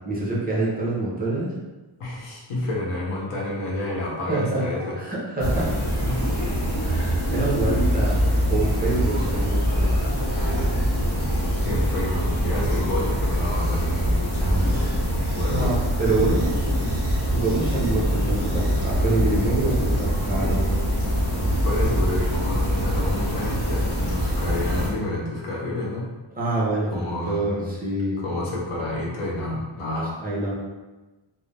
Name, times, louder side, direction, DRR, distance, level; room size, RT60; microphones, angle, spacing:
voice 1, 0.1-1.5 4.3-4.6 5.0-6.1 6.8-8.2 8.5-9.9 15.5-16.7 17.3-20.7 26.3-28.2 30.2-30.5, right 2 dB, 20° right, -6 dB, 0.6 m, -26 dB
voice 2, 2.0-5.0 6.1-6.9 11.1-14.8 15.3-15.8 21.6-26.1 26.9-27.9 28.2-30.1, left 1 dB, 90° left, -3 dB, 0.9 m, -29 dB
sound 1, 5.4-24.9, equal, 35° left, 1.1 m, -23 dB
2.4 x 2.0 x 3.2 m, 1.2 s
wide cardioid pair, 125°, 49 cm